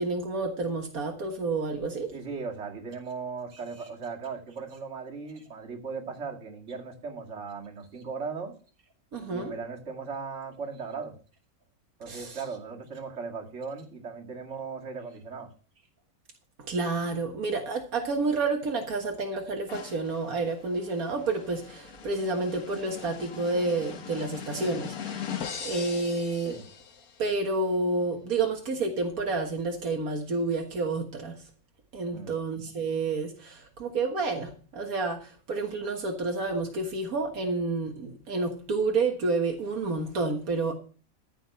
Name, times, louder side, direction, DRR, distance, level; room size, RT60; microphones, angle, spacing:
voice 1, 0.0-2.1 9.1-9.5 12.1-12.4 16.6-25.2 25.6-26.6 27.2-31.4 31.9-40.7, right 3 dB, 85° right, 2 dB, 2.0 m, -29 dB
voice 2, 2.1-8.5 9.3-11.2 12.0-15.5 26.4-26.6 32.1-32.3, right 5 dB, 55° right, 1 dB, 2.4 m, -38 dB
sound 1, 19.7-27.3, left 7 dB, 85° left, 1.6 m, -40 dB
14.0 x 5.7 x 5.6 m, 0.39 s
omnidirectional pair, 1.5 m